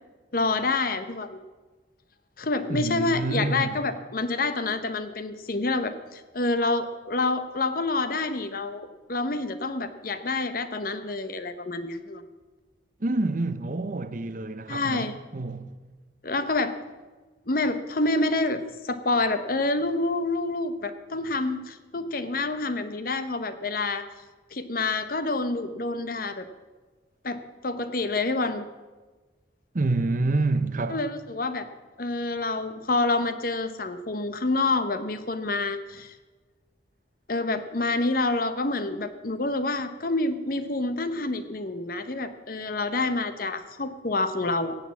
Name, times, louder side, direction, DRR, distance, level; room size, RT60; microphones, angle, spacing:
voice 1, 0.3-1.4 2.4-12.2 14.7-15.1 16.2-16.7 17.5-24.0 24.5-26.5 27.2-28.6 30.9-31.7 32.0-36.2 37.3-44.8, left 2 dB, 50° left, 0.9 m, -27 dB
voice 2, 2.7-3.8 13.0-15.7 29.7-31.0, right 2 dB, 45° right, 0.7 m, -27 dB
17.5 x 6.8 x 7.3 m
head